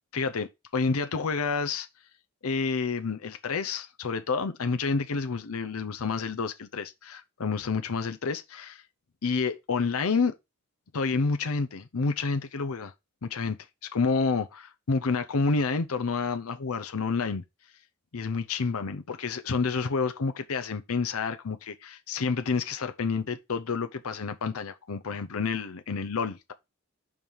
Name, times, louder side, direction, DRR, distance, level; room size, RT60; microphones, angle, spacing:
voice 1, 0.1-1.9 2.4-8.8 9.2-10.3 10.9-12.9 13.2-13.6 13.9-17.4 18.1-26.5, left 4 dB, 85° left, 0.7 m, -29 dB
5.3 x 4.7 x 5.5 m
head